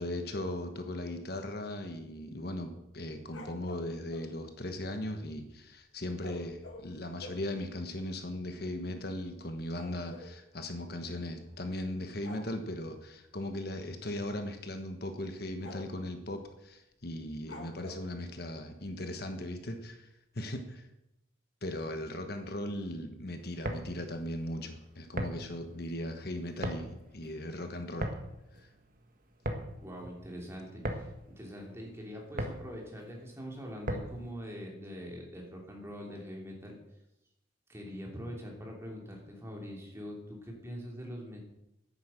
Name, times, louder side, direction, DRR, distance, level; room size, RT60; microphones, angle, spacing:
voice 1, 0.0-20.1 20.3-20.9 21.6-28.1 28.6-28.7, left 1 dB, 50° left, 6 dB, 1.3 m, -38 dB
sound 1, 2.9-4.3 6.2-7.5 8.2-8.3 8.5-8.7 9.0-10.4 11.5-11.8 12.2-12.5 13.9-14.1 14.5-14.6 15.1-15.2 15.6-16.1 17.5-18.1, left 1 dB, 80° left, 2.2 m, -48 dB
sound 2, 23.4-34.3, right 1 dB, 45° right, 1.4 m, -40 dB
voice 2, 29.8-31.1 31.4-36.7 37.7-41.4, equal, 15° right, -1 dB, 3.0 m, -43 dB
10.5 x 9.4 x 7.6 m, 0.87 s
head